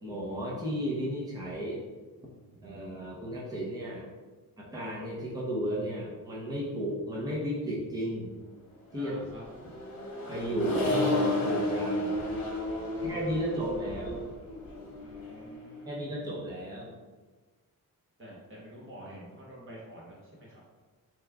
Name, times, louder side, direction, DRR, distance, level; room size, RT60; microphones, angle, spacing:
voice 1, 0.0-1.8 2.6-4.1 4.6-8.3 8.9-9.1 10.3-12.1 13.0-14.2 15.9-16.9, equal, 10° right, -5 dB, 0.6 m, -34 dB
voice 2, 8.9-9.7 12.9-14.0 15.0-16.0 18.2-20.8, right 1 dB, 35° right, -5 dB, 1.0 m, -49 dB
Accelerating revving vroom, 9.2-15.9, left 1 dB, 75° left, 1.0 m, -32 dB
3.0 x 2.3 x 3.4 m, 1.3 s
wide cardioid pair, 135°, 35 cm